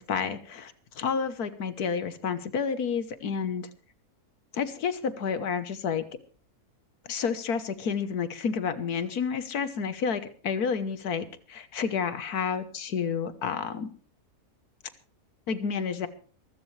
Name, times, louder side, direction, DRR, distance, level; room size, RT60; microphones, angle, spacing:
voice 1, 0.0-3.7 4.5-6.0 7.1-13.9 15.5-16.1, left 6 dB, 75° left, 12 dB, 1.6 m, -30 dB
22.5 x 14.5 x 3.3 m, 0.40 s
omnidirectional pair, 1.6 m